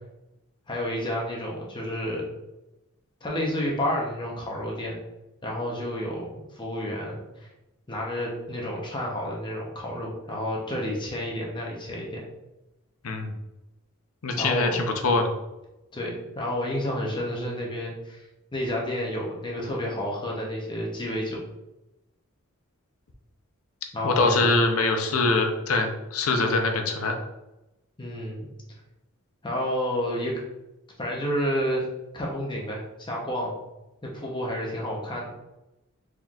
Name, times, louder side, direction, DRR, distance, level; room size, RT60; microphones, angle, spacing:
voice 1, 0.7-2.2 3.2-5.0 5.4-7.5 7.9-12.2 14.4-14.8 15.9-18.3 18.5-21.4 23.9-24.5 28.0-28.5 29.4-30.4 31.0-31.9 32.1-33.5 34.0-35.3, equal, 20° left, -3 dB, 0.8 m, -30 dB
voice 2, 14.2-15.2 24.0-27.2, left 3 dB, 75° left, 4 dB, 0.7 m, -23 dB
4.4 x 3.7 x 2.4 m, 0.96 s
head